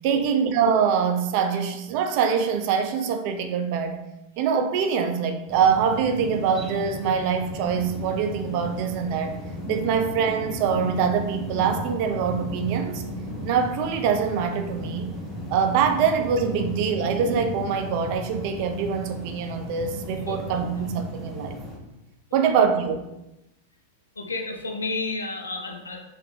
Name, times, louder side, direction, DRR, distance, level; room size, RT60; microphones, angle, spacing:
voice 1, 0.0-4.0 4.4-9.4 9.7-13.0 13.4-15.1 15.5-21.6 22.3-23.0, right 6 dB, 45° right, 7 dB, 0.3 m, -24 dB
sound 1, 5.5-21.8, left 1 dB, 5° right, 0.9 m, -35 dB
voice 2, 24.2-26.0, left 3 dB, 75° left, 2 dB, 0.5 m, -31 dB
3.0 x 2.3 x 3.3 m, 0.92 s
figure-of-eight pair, 90°, 0 cm